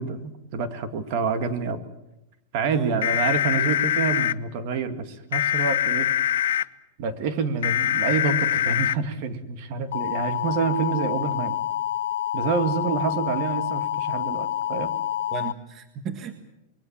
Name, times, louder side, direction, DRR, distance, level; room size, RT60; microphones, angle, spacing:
voice 1, 0.0-1.8 2.5-6.1 7.0-11.6 12.3-14.9, right 5 dB, 45° right, 9 dB, 2.2 m, -27 dB
voice 2, 2.7-3.1 15.3-16.3, right 6 dB, 25° right, 8 dB, 1.6 m, -35 dB
sound 1, 3.0-4.3 5.3-6.6 7.6-8.9 9.9-15.5, left 11 dB, 85° left, 0.9 m, -25 dB
26.5 x 22.0 x 7.4 m, 0.88 s
supercardioid pair, 160°, 0 cm